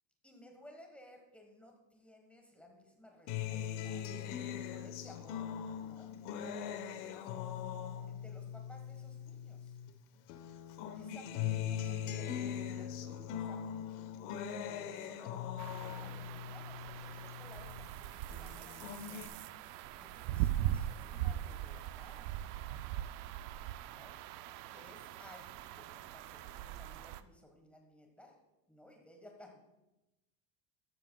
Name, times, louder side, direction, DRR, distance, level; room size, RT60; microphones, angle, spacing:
voice 1, 0.2-4.1 4.7-7.3 8.1-9.8 10.9-14.1 14.7-19.3 20.0-22.3 23.8-24.2 24.7-28.4 28.7-29.6, left 1 dB, 5° left, 2 dB, 1.3 m, -59 dB
Acoustic guitar, 3.3-9.9 10.3-17.9 18.3-19.3, left 9 dB, 80° left, 1.2 m, -41 dB
sound 1, 15.6-27.2, right 12 dB, 85° right, 0.7 m, -40 dB
13.0 x 13.0 x 2.3 m, 0.98 s
cardioid pair, 175°, 46 cm